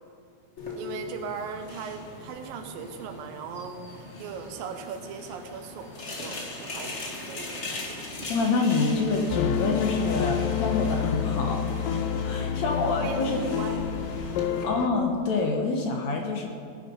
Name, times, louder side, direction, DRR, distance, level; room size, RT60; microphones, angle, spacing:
sound 1, 0.6-14.6, left 2 dB, 50° left, 0.8 m, -40 dB
voice 1, 0.8-6.9 7.2-7.5 12.3-12.5 13.0-13.9 14.3-14.5, right 6 dB, 80° right, 6 dB, 2.8 m, -38 dB
voice 2, 8.3-13.4 14.6-16.5, left 3 dB, 65° left, 2 dB, 2.1 m, -27 dB
sound 2, 9.3-14.9, left 8 dB, 80° left, 2.2 m, -28 dB
18.0 x 9.9 x 5.4 m, 2.3 s
omnidirectional pair, 4.0 m